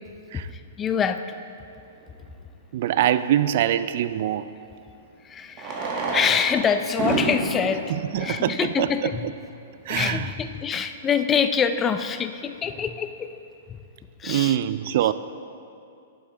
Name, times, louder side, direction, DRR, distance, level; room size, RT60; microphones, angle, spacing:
voice 1, 0.3-1.4 5.2-9.2 9.9-13.3 13.7-13.8 14.2-14.6, left 7 dB, 20° left, 9 dB, 0.4 m, -25 dB
Fireworks, 2.0-2.1 4.3-4.4 5.5-9.3 10.0-10.1 10.3-10.4 10.6-10.7 11.2-11.5, right 3 dB, 40° right, 1.7 m, -29 dB
voice 2, 2.7-4.5 7.9-9.1 9.9-10.3 14.2-15.1, right 11 dB, 55° right, 14 dB, 0.3 m, -24 dB
11.5 x 7.8 x 3.9 m, 2.5 s
hypercardioid pair, 125°, 0 cm